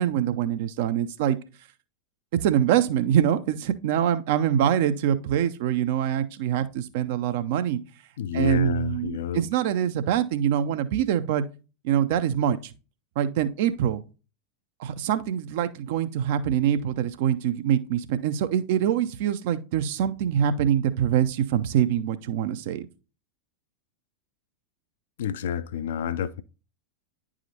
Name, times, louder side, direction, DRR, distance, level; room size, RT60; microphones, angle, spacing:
voice 1, 0.0-1.4 2.4-7.8 8.3-11.4 11.8-12.6 13.2-14.0 14.8-22.9, right 10 dB, 50° right, 0.5 m, -24 dB
voice 2, 8.2-9.4 25.2-26.4, left 8 dB, 60° left, 0.4 m, -29 dB
9.5 x 4.9 x 2.8 m
figure-of-eight pair, 90°, 0 cm